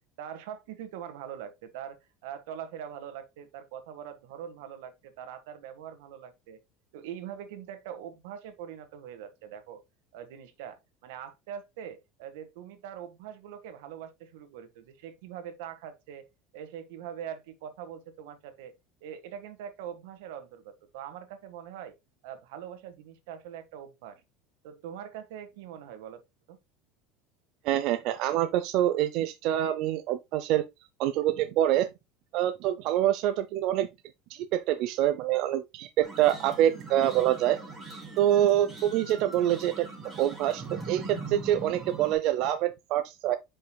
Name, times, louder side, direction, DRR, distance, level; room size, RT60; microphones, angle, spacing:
voice 1, 0.2-6.6 6.9-9.8 10.1-16.3 16.5-18.7 19.0-21.9 22.2-24.2 24.6-26.2 26.5-26.6, right 9 dB, 90° right, 1.5 m, -42 dB
voice 2, 27.6-30.6 31.0-31.9 32.3-33.9 34.3-37.6 38.2-39.9 40.2-43.4, right 12 dB, 50° right, 0.6 m, -26 dB
sound 1, 36.0-42.1, right 3 dB, 10° right, 2.9 m, -41 dB
8.8 x 5.4 x 2.2 m
cardioid pair, 165°, 0 cm